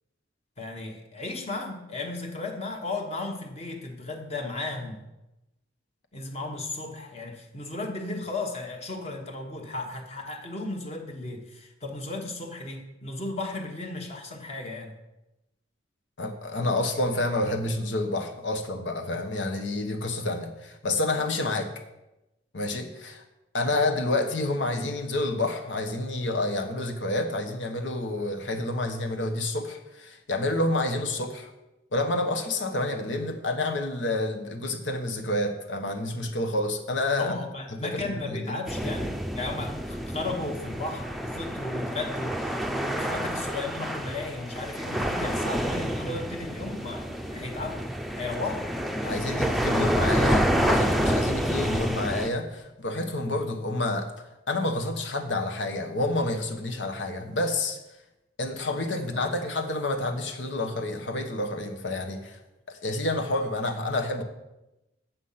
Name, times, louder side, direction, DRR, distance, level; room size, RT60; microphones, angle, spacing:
voice 1, 0.6-5.0 6.1-14.9 37.2-47.9 48.2-48.7 59.0-59.4, left 2 dB, 35° left, 3 dB, 1.1 m, -35 dB
voice 2, 16.2-21.7 22.5-23.2 23.5-31.5 31.9-37.3 37.8-39.0 49.0-54.1 54.5-57.8 58.4-62.4 62.7-64.2, left 2 dB, 85° left, 5 dB, 1.2 m, -29 dB
sound 1, 38.7-52.3, equal, ahead, 0.5 m, -28 dB
8.2 x 7.2 x 5.7 m, 0.96 s
head